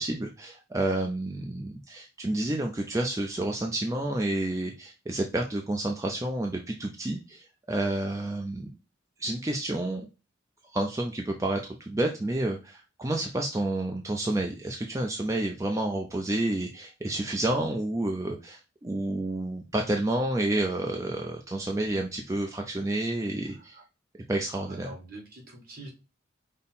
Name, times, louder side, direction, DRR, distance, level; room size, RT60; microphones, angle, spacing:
voice 1, 0.0-8.7 9.2-10.0 10.7-23.8 24.3-24.9, right 1 dB, 15° right, 2 dB, 0.4 m, -30 dB
voice 2, 23.5-23.8 24.7-25.9, right 2 dB, 45° right, -1 dB, 1.6 m, -45 dB
5.3 x 2.0 x 4.2 m, 0.29 s
head